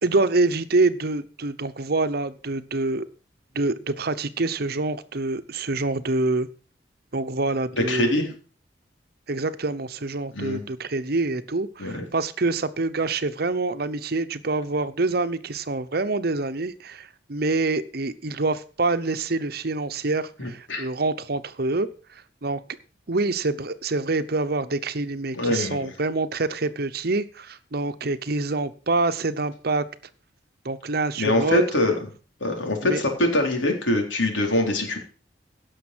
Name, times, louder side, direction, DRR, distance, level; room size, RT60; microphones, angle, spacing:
voice 1, 0.0-3.1 3.5-6.5 7.1-8.2 9.3-22.6 23.1-29.9 30.6-31.6 32.8-33.0, right 3 dB, 55° right, 12 dB, 0.9 m, -26 dB
voice 2, 7.9-8.3 10.3-10.6 11.8-12.0 20.4-20.9 25.3-25.9 31.2-31.9 32.4-35.0, left 1 dB, 85° left, 2 dB, 4.0 m, -23 dB
17.0 x 6.7 x 6.2 m, 0.39 s
head